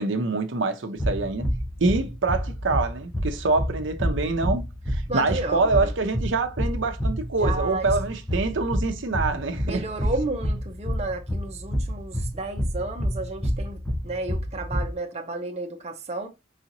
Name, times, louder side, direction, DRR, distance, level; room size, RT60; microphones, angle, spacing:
voice 1, 0.0-1.5 1.8-9.8, right 3 dB, 80° right, 0.6 m, -25 dB
sound 1, 1.0-14.9, equal, 5° left, 0.7 m, -28 dB
voice 2, 5.1-5.9 7.4-8.0 9.6-16.3, right 2 dB, 35° right, 0.7 m, -32 dB
4.8 x 2.9 x 2.6 m
head